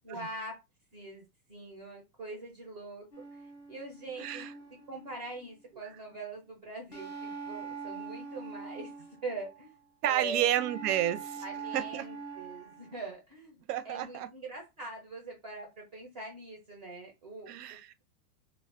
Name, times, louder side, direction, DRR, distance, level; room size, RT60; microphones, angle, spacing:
voice 1, 0.0-0.6 0.9-3.1 3.3-4.5 4.9-9.7 10.0-10.5 11.4-17.5, right 2 dB, 30° right, 0.4 m, -43 dB
sound 1, 3.1-5.6 6.9-9.7 10.5-13.1, right 5 dB, 30° left, 0.4 m, -43 dB
voice 2, 10.0-11.4 11.7-12.1 13.7-14.3 17.5-17.9, right 11 dB, 90° right, 0.6 m, -30 dB
2.3 x 2.0 x 3.5 m
supercardioid pair, 170°, 46 cm